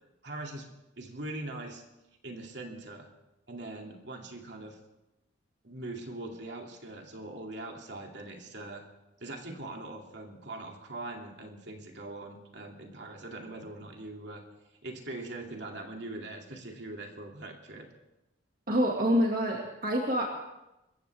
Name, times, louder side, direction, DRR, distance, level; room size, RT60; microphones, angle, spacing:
voice 1, 0.2-1.8 2.2-3.1 3.5-4.8 5.6-8.9 9.2-14.4 14.8-17.9, right 2 dB, 60° right, 1 dB, 2.7 m, -42 dB
voice 2, 18.7-20.3, equal, 45° right, -1 dB, 2.2 m, -26 dB
26.5 x 14.5 x 3.5 m, 0.95 s
head